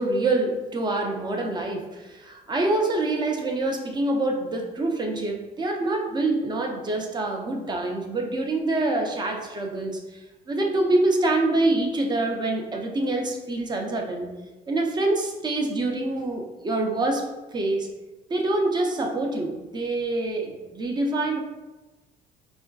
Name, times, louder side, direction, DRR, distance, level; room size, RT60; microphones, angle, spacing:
voice 1, 0.0-10.2 10.5-14.3 14.7-17.9 18.3-21.4, right 2 dB, 25° right, 2 dB, 0.5 m, -26 dB
3.7 x 2.4 x 2.3 m, 1.1 s
cardioid pair, 110°, 17 cm